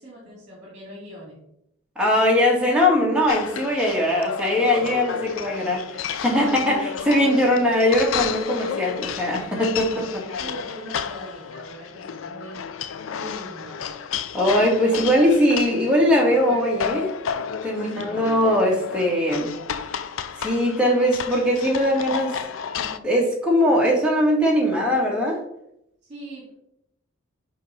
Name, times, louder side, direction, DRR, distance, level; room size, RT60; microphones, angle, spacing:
voice 1, 0.0-1.4 7.2-7.6 9.8-12.7 13.1-13.8 17.7-18.2 26.1-26.5, right 1 dB, 35° right, -4 dB, 2.2 m, -40 dB
voice 2, 1.9-10.1 14.3-17.1 17.6-19.5 20.4-22.3 22.8-25.4, left 1 dB, 5° right, -3 dB, 1.7 m, -21 dB
sound 1, 3.3-23.0, left 7 dB, 75° left, 0.4 m, -32 dB
7.3 x 3.1 x 5.7 m, 0.77 s
head